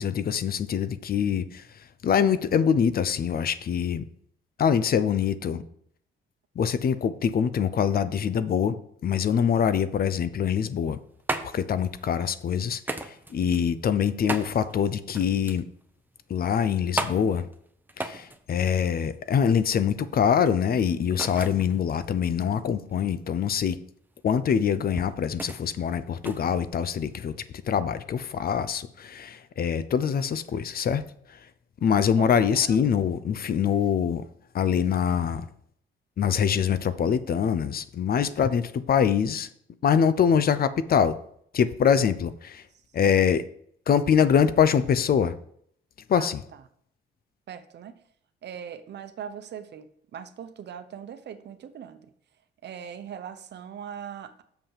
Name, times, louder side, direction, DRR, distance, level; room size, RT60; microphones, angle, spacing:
voice 1, 0.0-1.6 2.0-4.0 4.6-5.6 6.6-8.8 9.0-11.0 11.5-12.8 13.3-15.6 16.3-17.4 18.0-23.8 24.2-27.3 27.7-31.0 31.8-34.2 34.5-35.5 36.2-39.5 39.8-41.1 41.5-42.6 42.9-43.4 43.9-45.3 46.1-46.4, left 7 dB, 50° left, 0.6 m, -24 dB
sound 1, 10.8-27.3, right 2 dB, 10° right, 0.8 m, -38 dB
voice 2, 32.2-32.9 46.1-46.6 47.5-47.9 48.4-52.1 52.6-54.4, right 8 dB, 60° right, 0.9 m, -40 dB
6.9 x 5.5 x 5.7 m
cardioid pair, 90°, 20 cm